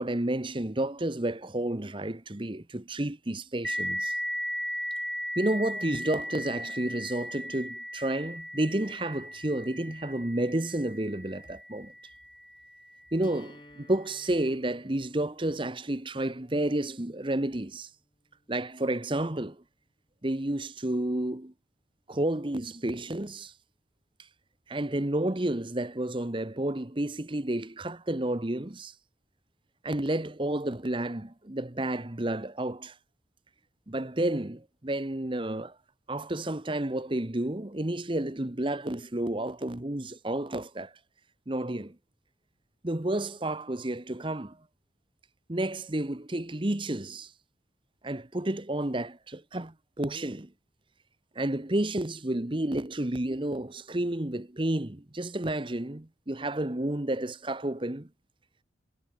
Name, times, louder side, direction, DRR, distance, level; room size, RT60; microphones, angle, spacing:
voice 1, 0.0-4.2 5.4-11.9 13.1-17.9 18.5-19.6 20.2-21.5 22.1-23.5 24.7-28.9 29.8-32.9 33.9-35.7 36.1-40.9 41.5-42.0 42.8-44.6 45.5-47.3 48.0-50.5 51.3-58.1, right 1 dB, 25° right, 1.0 m, -31 dB
sound 1, 3.6-12.9, equal, ahead, 1.6 m, -37 dB
sound 2, 13.2-19.2, left 1 dB, 25° left, 7.0 m, -57 dB
head